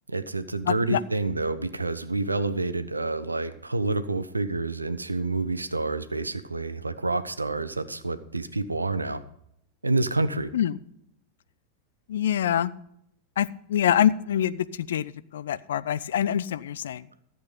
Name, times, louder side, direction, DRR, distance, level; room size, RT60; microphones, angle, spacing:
voice 1, 0.1-9.2 9.8-10.5, right 2 dB, 80° right, 13 dB, 0.8 m, -28 dB
voice 2, 0.7-1.0 10.5-10.8 12.1-12.7 13.4-17.1, left 10 dB, 60° left, 17 dB, 0.5 m, -25 dB
13.5 x 7.9 x 5.3 m, 0.75 s
figure-of-eight pair, 90°, 0 cm